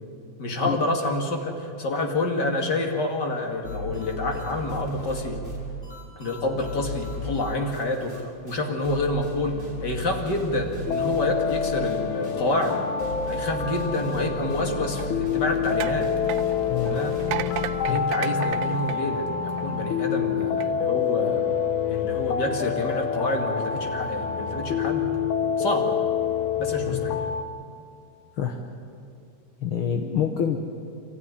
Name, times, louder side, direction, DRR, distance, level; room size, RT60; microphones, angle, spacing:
voice 1, 0.4-5.4 6.2-9.5 9.8-12.9 13.3-16.1 16.8-17.2 17.9-19.3 19.6-21.5 21.9-25.1 25.6-26.0 26.6-27.2, left 2 dB, 35° left, 2 dB, 2.7 m, -28 dB
sound 1, 3.6-8.2 8.5-8.6 8.8-18.1, left 1 dB, 15° left, 5.8 m, -37 dB
sound 2, 10.9-27.4, left 7 dB, 80° left, 2.6 m, -27 dB
sound 3, 14.9-19.9 20.4-20.7, right 13 dB, 75° right, 1.5 m, -35 dB
voice 2, 29.6-30.6, left 8 dB, 55° left, 4 dB, 1.6 m, -26 dB
28.0 x 14.5 x 9.9 m, 2.4 s
omnidirectional pair, 3.4 m